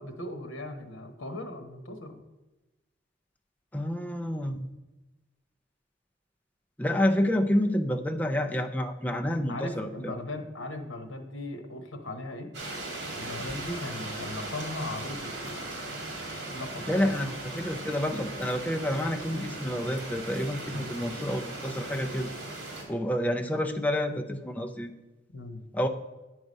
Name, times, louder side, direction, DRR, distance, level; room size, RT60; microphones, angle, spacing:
voice 1, 0.0-2.2 9.5-15.6 16.5-17.2 20.7-20.9 25.3-25.6, left 2 dB, 85° left, 6 dB, 1.0 m, -38 dB
voice 2, 3.7-4.7 6.8-10.1 16.9-22.3 22.9-24.9 25.7-25.9, left 1 dB, 10° left, 4 dB, 0.5 m, -29 dB
sound 1, 12.5-22.8, right 2 dB, 60° right, 2.0 m, -38 dB
9.1 x 4.8 x 5.3 m, 1.1 s
head